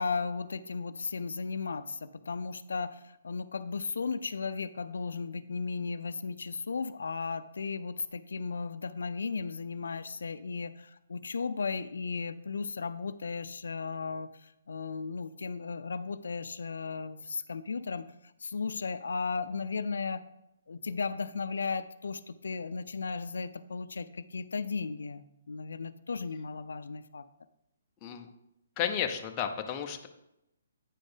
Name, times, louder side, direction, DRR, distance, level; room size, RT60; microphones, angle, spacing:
voice 1, 0.0-3.0 3.2-14.3 14.7-18.1 18.4-20.2 20.7-27.2, left 4 dB, 85° left, 12 dB, 0.4 m, -35 dB
voice 2, 28.8-30.1, left 8 dB, 20° left, 4 dB, 0.6 m, -32 dB
8.9 x 4.2 x 5.0 m, 0.86 s
hypercardioid pair, 165°, 0 cm